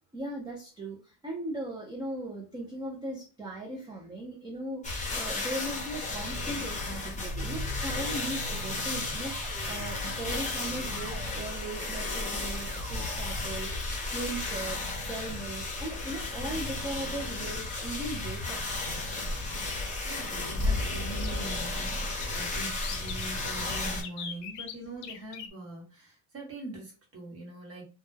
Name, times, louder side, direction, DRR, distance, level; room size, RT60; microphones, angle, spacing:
voice 1, 0.1-14.8 15.1-18.6, right 1 dB, 10° right, -2 dB, 0.3 m, -38 dB
sound 1, 4.8-24.0, left 2 dB, 15° left, 0.8 m, -33 dB
sound 2, 7.3-15.9, right 6 dB, 70° right, 0.8 m, -47 dB
voice 2, 20.0-27.8, right 2 dB, 30° right, -1 dB, 1.1 m, -43 dB
sound 3, 21.0-25.5, left 8 dB, 65° left, 0.6 m, -42 dB
2.1 x 2.1 x 3.1 m, 0.33 s
cardioid pair, 125°, 46 cm